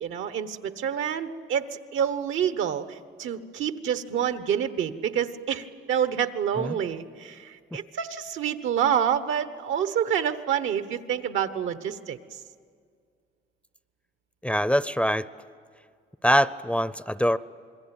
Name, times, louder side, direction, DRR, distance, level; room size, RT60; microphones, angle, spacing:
voice 1, 0.0-12.2, right 9 dB, 80° right, 11 dB, 1.2 m, -28 dB
voice 2, 14.4-15.3 16.2-17.4, equal, 5° left, 16 dB, 0.6 m, -23 dB
27.5 x 21.5 x 8.9 m, 2.1 s
cardioid pair, 90°, 20 cm